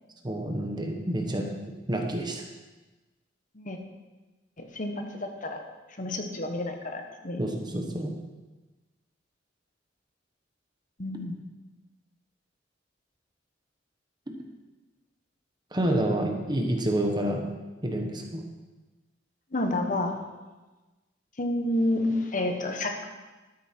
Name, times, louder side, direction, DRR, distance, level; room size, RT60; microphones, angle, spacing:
voice 1, 0.2-1.5 1.9-2.4 7.4-8.1 15.7-17.4 17.8-18.4, right 1 dB, 25° right, 3 dB, 1.2 m, -28 dB
voice 2, 4.7-5.6 6.0-7.4 11.0-11.3 19.5-20.1 21.4-23.1, left 1 dB, 45° left, 4 dB, 1.3 m, -29 dB
13.0 x 9.1 x 4.6 m, 1.2 s
head